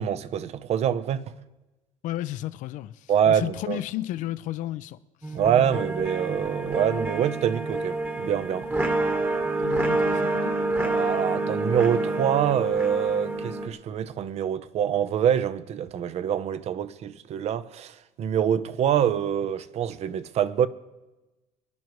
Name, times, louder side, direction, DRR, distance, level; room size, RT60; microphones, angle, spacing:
voice 1, 0.0-1.3 3.1-3.8 5.3-8.7 10.8-20.7, right 9 dB, 50° right, 0.7 m, -25 dB
voice 2, 2.0-5.4 9.6-10.6, left 14 dB, 60° left, 0.6 m, -33 dB
sound 1, 5.2-13.7, right 2 dB, 15° right, 1.2 m, -27 dB
24.5 x 10.5 x 3.1 m
cardioid pair, 115°, 14 cm